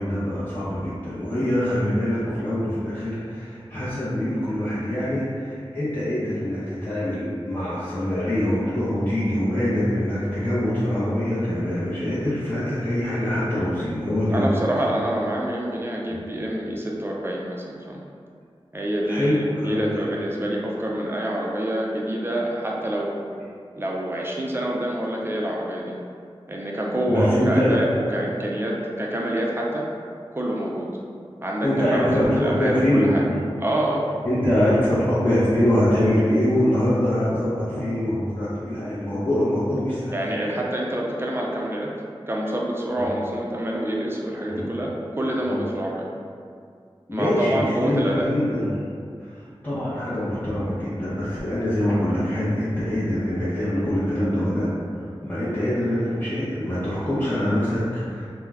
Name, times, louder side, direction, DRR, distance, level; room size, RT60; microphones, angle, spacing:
voice 1, 0.0-14.5 16.1-16.2 19.1-19.9 27.1-27.8 31.6-33.4 34.2-40.2 43.0-43.1 44.5-44.7 45.4-45.6 47.1-48.9 49.2-49.3 49.6-54.7 55.0-58.3, left 1 dB, 20° left, -13 dB, 0.6 m, -24 dB
voice 2, 14.3-18.0 18.7-23.2 23.8-26.0 26.5-29.9 30.3-30.9 31.4-33.2 33.6-34.0 40.1-41.9 42.3-46.1 47.1-48.3, right 1 dB, 25° right, -3 dB, 0.4 m, -26 dB
2.3 x 2.0 x 3.3 m, 2.3 s
wide cardioid pair, 45°, 10 cm